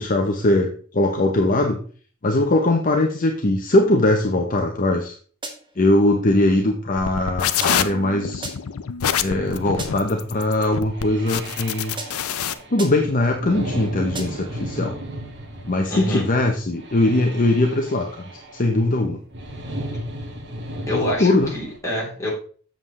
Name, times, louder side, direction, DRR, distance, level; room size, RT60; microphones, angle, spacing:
voice 1, 0.0-1.8 2.2-5.1 5.8-8.5 9.2-12.0 12.7-14.9 15.6-18.2 18.6-19.2 20.9-21.5, left 2 dB, 40° left, 3 dB, 0.8 m, -20 dB
sound 1, 5.4-5.9 7.6-8.0 8.4-8.9 9.8-10.2 12.0-12.4 12.8-13.2 14.1-14.6, right 2 dB, 25° right, 1.3 m, -37 dB
sound 2, 7.0-12.5, left 9 dB, 85° left, 0.5 m, -25 dB
sound 3, 9.2-21.8, equal, 55° right, 1.7 m, -35 dB
voice 2, 15.9-16.3 20.9-22.3, left 1 dB, 15° left, -5 dB, 3.4 m, -26 dB
7.7 x 7.3 x 3.2 m, 0.43 s
head